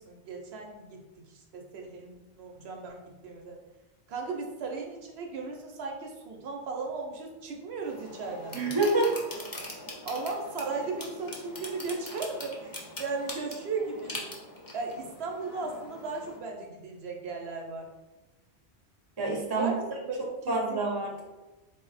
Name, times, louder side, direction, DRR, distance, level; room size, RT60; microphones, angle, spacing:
voice 1, 0.0-3.6 4.1-8.6 10.0-14.4 14.7-17.9 19.5-20.8, right 4 dB, 70° right, 1 dB, 0.8 m, -36 dB
sound 1, 7.8-16.4, left 1 dB, 25° left, 0.5 m, -42 dB
voice 2, 8.5-9.1 19.2-19.7 20.5-21.2, right 2 dB, 25° right, -1 dB, 0.6 m, -27 dB
4.0 x 2.1 x 3.9 m, 1.1 s
omnidirectional pair, 1.2 m